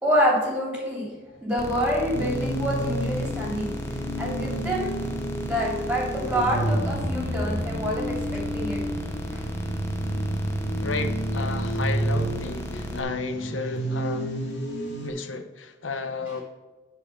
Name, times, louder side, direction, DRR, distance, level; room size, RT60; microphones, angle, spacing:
voice 1, 0.0-1.1 1.4-3.7 4.2-5.0 5.4-8.8 9.3-9.4, equal, 5° right, -3 dB, 3.2 m, -26 dB
sound 1, 1.6-13.0, left 1 dB, 15° left, 0.8 m, -35 dB
sound 2, 2.1-15.1, right 1 dB, 65° left, 2.0 m, -30 dB
voice 2, 10.8-14.3 15.0-16.4, left 4 dB, 80° left, 8 dB, 1.0 m, -33 dB
10.0 x 4.8 x 5.9 m, 1.2 s
head